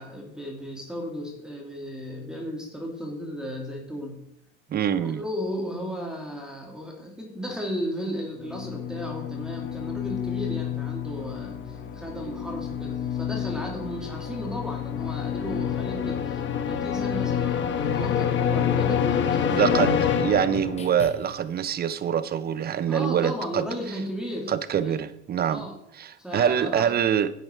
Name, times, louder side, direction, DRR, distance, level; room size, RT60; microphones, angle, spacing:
voice 1, 0.0-4.2 4.9-19.8 22.9-25.0 25.5-25.8 26.2-26.9, equal, ahead, 0 dB, 2.9 m, -35 dB
voice 2, 4.7-5.2 19.5-23.6 24.5-25.7 26.0-27.3, right 8 dB, 30° right, 14 dB, 0.8 m, -25 dB
sound 1, 8.4-21.0, left 8 dB, 40° left, 1.4 m, -28 dB
sound 2, 19.2-21.5, left 3 dB, 20° left, 1.5 m, -41 dB
11.0 x 7.8 x 4.7 m, 0.75 s
supercardioid pair, 100°, 31 cm